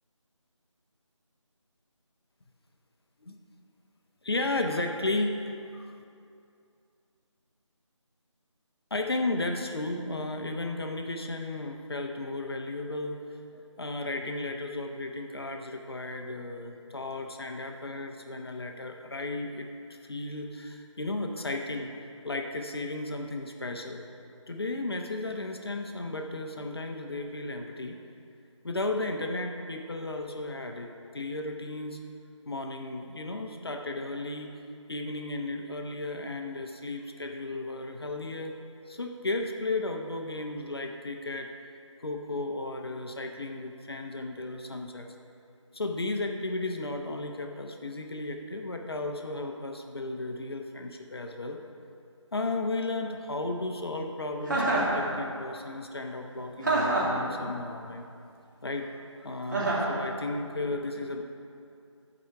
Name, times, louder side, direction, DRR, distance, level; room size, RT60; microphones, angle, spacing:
voice 1, 4.2-5.9 8.9-13.2 13.5-19.7 20.0-21.9 22.2-24.0 24.5-28.0 28.6-32.0 32.5-34.5 34.9-38.5 38.9-41.5 42.0-45.1 45.7-51.6 52.3-58.1 58.6-58.9 59.2-61.2, left 2 dB, 50° left, 3 dB, 0.8 m, -34 dB
Chuckle chortle, 54.5-55.0 56.6-57.2 59.5-59.9, right 2 dB, 40° right, 2.2 m, -26 dB
12.5 x 4.8 x 6.7 m, 2.5 s
figure-of-eight pair, 165°, 16 cm